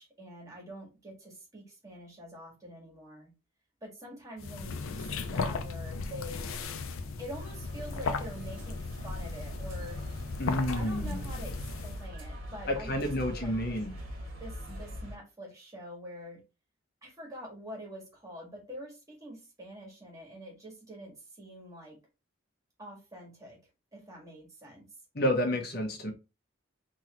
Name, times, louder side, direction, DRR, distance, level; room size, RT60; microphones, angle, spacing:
voice 1, 0.0-3.3 3.8-6.5 7.2-10.1 10.7-13.8 14.4-16.4 17.0-22.0 22.8-23.6 23.9-24.9, equal, 15° right, -2 dB, 1.7 m, -46 dB
sound 1, 4.4-12.1, left 4 dB, 85° left, 0.5 m, -36 dB
sound 2, 7.4-15.1, equal, 80° right, 1.4 m, -42 dB
voice 2, 10.4-11.2 12.7-13.9 25.1-26.1, equal, 50° left, 2 dB, 1.0 m, -30 dB
3.7 x 2.9 x 3.0 m, 0.28 s
head